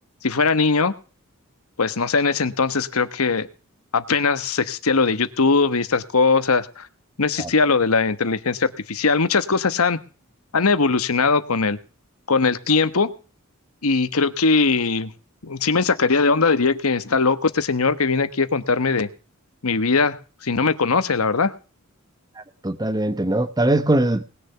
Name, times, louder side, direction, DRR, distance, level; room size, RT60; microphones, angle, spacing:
voice 1, 0.2-0.9 1.8-3.5 3.9-6.9 7.2-10.0 10.5-11.8 12.3-13.1 13.8-15.1 15.4-19.1 19.6-20.2 20.4-21.5, left 4 dB, 85° left, 1.2 m, -20 dB
voice 2, 22.4-24.2, right 1 dB, 20° right, 1.0 m, -21 dB
19.5 x 6.8 x 5.7 m
head